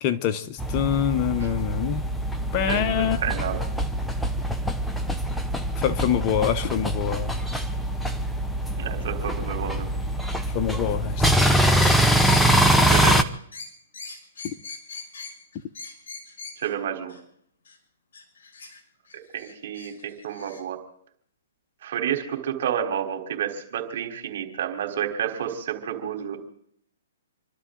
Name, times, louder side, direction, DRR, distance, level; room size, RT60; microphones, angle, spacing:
voice 1, 0.0-2.0 2.5-3.2 5.8-7.4 10.5-11.3 12.7-13.2, left 9 dB, 30° left, 0.9 m, -25 dB
sound 1, 0.6-13.2, right 1 dB, 5° left, 0.8 m, -23 dB
voice 2, 2.7-3.6 8.7-9.9 12.8-13.1 16.6-17.2 19.3-20.8 21.8-26.5, right 9 dB, 60° right, 3.9 m, -30 dB
sound 2, 11.4-16.7 17.1-17.2 17.7-17.8 18.1-18.8 19.1-20.6, left 4 dB, 65° left, 5.7 m, -41 dB
28.0 x 12.5 x 3.9 m
hypercardioid pair, 145°, 0 cm